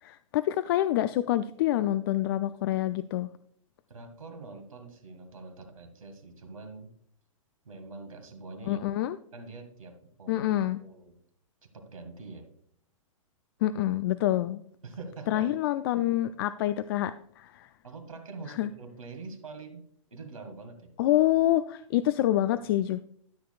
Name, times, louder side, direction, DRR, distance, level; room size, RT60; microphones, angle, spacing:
voice 1, 0.0-3.3 8.7-9.2 10.3-10.8 13.6-14.6 15.3-17.7 18.6-18.7 21.0-23.0, left 14 dB, 45° left, 12 dB, 0.4 m, -27 dB
voice 2, 3.9-6.9 7.7-8.8 9.3-10.5 10.8-11.2 11.7-12.5 14.8-15.5 17.8-19.8 20.1-20.9, right 3 dB, 85° right, 4 dB, 2.1 m, -44 dB
13.0 x 6.7 x 2.4 m, 0.64 s
hypercardioid pair, 115°, 17 cm